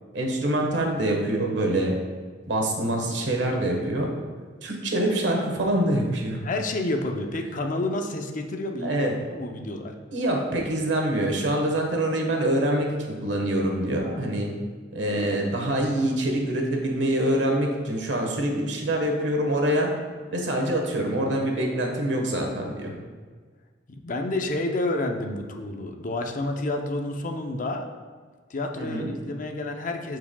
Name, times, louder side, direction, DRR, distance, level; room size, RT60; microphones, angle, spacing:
voice 1, 0.1-1.9 2.5-4.1 4.6-6.4 8.8-9.1 10.1-14.5 14.9-19.9 20.3-22.9 28.8-29.1, right 1 dB, 70° right, 1 dB, 1.3 m, -25 dB
voice 2, 6.4-9.9 23.9-27.8 28.5-30.2, left 2 dB, 45° left, 4 dB, 0.6 m, -29 dB
12.5 x 4.7 x 2.3 m, 1.5 s
head